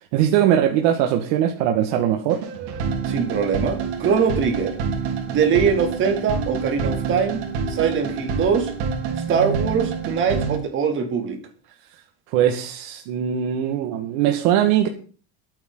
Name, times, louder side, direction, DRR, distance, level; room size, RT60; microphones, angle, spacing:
voice 1, 0.0-2.4 12.3-14.9, right 10 dB, 70° right, 1.8 m, -20 dB
sound 1, 2.3-10.6, right 5 dB, 90° right, 3.7 m, -27 dB
voice 2, 3.1-4.8 5.3-8.7 9.3-11.4, right 6 dB, 35° right, 2.9 m, -22 dB
23.0 x 8.7 x 3.9 m
cardioid pair, 165°, 32 cm